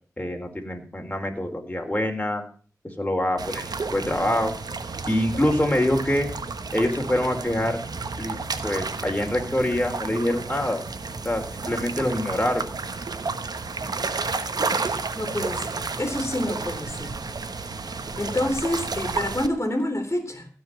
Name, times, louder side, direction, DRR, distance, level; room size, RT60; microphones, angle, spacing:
voice 1, 0.2-2.4 3.0-4.6 5.1-6.3 6.7-7.8 8.2-8.4 8.6-10.8 11.2-12.6, left 1 dB, 20° left, 2 dB, 3.9 m, -25 dB
sound 1, 3.4-19.5, right 4 dB, 80° right, 1.2 m, -31 dB
voice 2, 15.1-17.1 18.0-20.5, left 1 dB, 35° left, 5 dB, 3.3 m, -28 dB
16.0 x 5.5 x 8.4 m, 0.41 s
cardioid pair, 40°, 7 cm